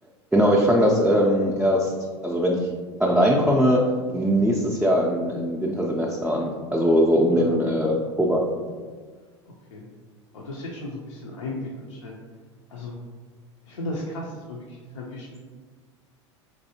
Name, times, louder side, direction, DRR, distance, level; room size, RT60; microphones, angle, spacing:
voice 1, 0.3-1.9 2.2-2.7 3.0-3.8 4.1-8.4, equal, 5° right, -3 dB, 0.3 m, -21 dB
voice 2, 10.3-12.1 12.7-12.9 13.7-15.4, left 1 dB, 85° left, -3 dB, 0.5 m, -35 dB
3.2 x 2.6 x 2.8 m, 1.5 s
hypercardioid pair, 90°, 15 cm